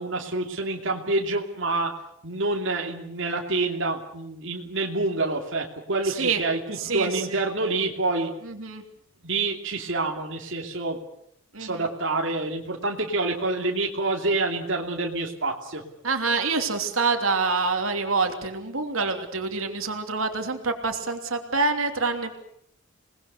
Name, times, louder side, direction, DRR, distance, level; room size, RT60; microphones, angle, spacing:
voice 1, 0.0-1.9 2.2-8.3 9.2-11.0 11.6-15.8, right 2 dB, 65° right, 1 dB, 2.8 m, -27 dB
voice 2, 6.0-6.4 6.7-7.4 8.4-8.8 11.5-11.9 16.0-22.4, right 4 dB, 90° right, 5 dB, 3.0 m, -26 dB
27.5 x 20.0 x 6.8 m, 0.73 s
head